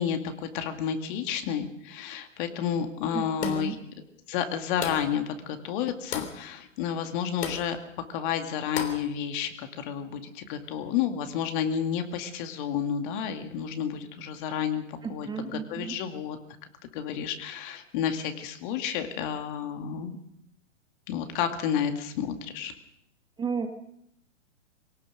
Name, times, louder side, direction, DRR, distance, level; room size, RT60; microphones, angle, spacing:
voice 1, 0.0-3.8 4.3-7.8 8.1-16.4 16.9-20.2 21.1-22.7, left 8 dB, 40° left, 7 dB, 2.3 m, -31 dB
voice 2, 3.1-3.8 15.0-16.0 23.4-23.7, right 6 dB, 10° right, 6 dB, 1.3 m, -33 dB
sound 1, 3.4-3.8 4.8-5.2 6.1-6.4 7.4-7.7 8.8-9.1, left 7 dB, 55° left, 3.6 m, -34 dB
22.5 x 18.0 x 6.5 m, 0.72 s
hypercardioid pair, 120°, 38 cm